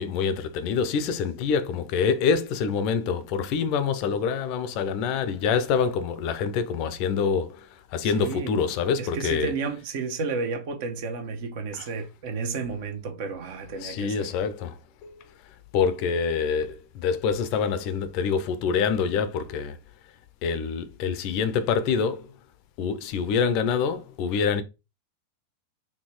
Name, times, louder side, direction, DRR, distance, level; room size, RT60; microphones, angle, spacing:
voice 1, 0.0-7.6 7.9-9.5 11.8-11.9 13.8-14.7 15.0-15.1 15.7-19.8 20.4-22.3 22.8-24.6, left 6 dB, 45° left, 0.6 m, -26 dB
voice 2, 8.0-8.6 9.0-14.3, right 4 dB, 50° right, 1.0 m, -32 dB
4.3 x 2.9 x 3.1 m
figure-of-eight pair, 90°, 0 cm